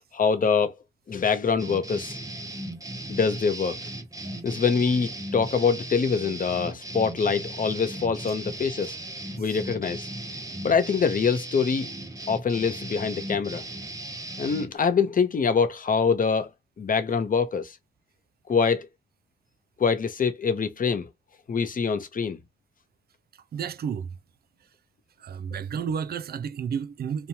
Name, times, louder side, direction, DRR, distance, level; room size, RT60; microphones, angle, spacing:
voice 1, 0.1-0.7 1.1-2.2 3.1-3.8 4.4-9.0 9.4-10.1 10.6-11.9 12.3-13.6 14.4-16.5 16.8-17.8 18.5-18.9 19.8-21.1 21.5-22.4, left 5 dB, 50° left, 0.7 m, -24 dB
sound 1, 1.6-14.7, right 1 dB, 20° right, 0.7 m, -37 dB
voice 2, 23.5-24.1 25.2-27.3, right 7 dB, 60° right, 0.4 m, -31 dB
2.9 x 2.2 x 2.7 m
cardioid pair, 60°, 18 cm